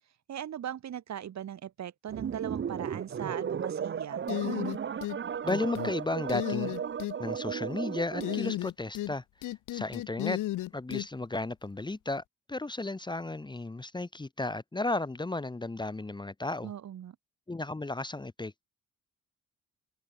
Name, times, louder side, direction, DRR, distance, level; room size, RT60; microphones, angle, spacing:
voice 1, 0.3-4.2 16.6-17.2, right 10 dB, 65° right, 5.4 m, -39 dB
sound 1, 2.1-8.6, right 7 dB, 40° right, 1.1 m, -35 dB
sound 2, 4.3-5.2 5.5-5.9 6.3-7.1 8.2-9.1 9.4-11.1, left 15 dB, 85° left, 2.7 m, -33 dB
voice 2, 5.4-6.8 7.2-10.4 10.7-12.2 12.5-16.7 17.5-18.6, left 2 dB, 15° left, 1.4 m, -34 dB
cardioid pair, 90°, 30 cm